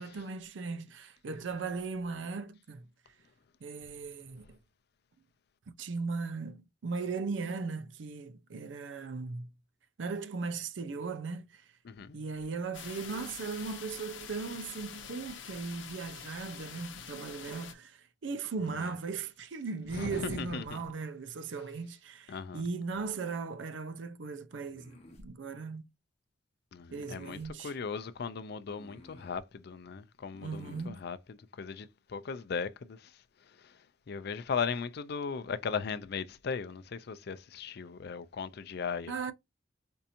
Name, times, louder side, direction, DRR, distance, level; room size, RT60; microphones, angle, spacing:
voice 1, 0.0-2.9 3.6-4.6 5.8-9.5 10.0-11.6 12.1-25.9 26.9-27.8 30.4-31.1 39.1-39.3, right 4 dB, 75° right, 0.5 m, -38 dB
voice 2, 11.8-12.2 19.9-20.8 22.3-22.6 26.7-27.4 27.6-31.2 31.6-33.0 34.1-39.1, left 5 dB, 60° left, 0.4 m, -37 dB
sound 1, 12.7-17.7, left 8 dB, 85° left, 0.7 m, -46 dB
sound 2, 24.6-25.3 26.9-27.5 28.7-29.4 30.3-30.9, left 1 dB, 35° left, 0.9 m, -53 dB
4.5 x 2.8 x 2.5 m
head